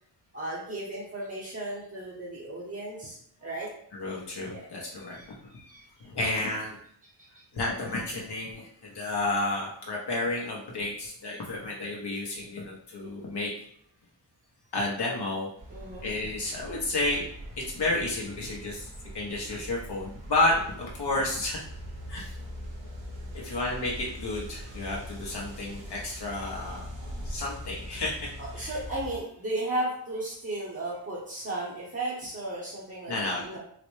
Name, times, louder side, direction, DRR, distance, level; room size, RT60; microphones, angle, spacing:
voice 1, 0.3-3.7 4.5-6.1 7.2-7.4 15.7-16.1 28.4-33.6, right 1 dB, 30° right, -6 dB, 0.8 m, -35 dB
voice 2, 3.9-5.2 6.0-6.8 7.5-13.5 14.7-15.5 16.0-17.2 17.6-18.9 19.1-21.6 22.1-22.3 23.3-26.9 27.2-28.3 28.5-28.7 33.1-33.6, left 2 dB, 60° left, -3 dB, 0.8 m, -31 dB
sound 1, 15.6-29.2, equal, 75° right, 0.9 m, -42 dB
4.0 x 2.1 x 3.1 m, 0.66 s
wide cardioid pair, 80°, 44 cm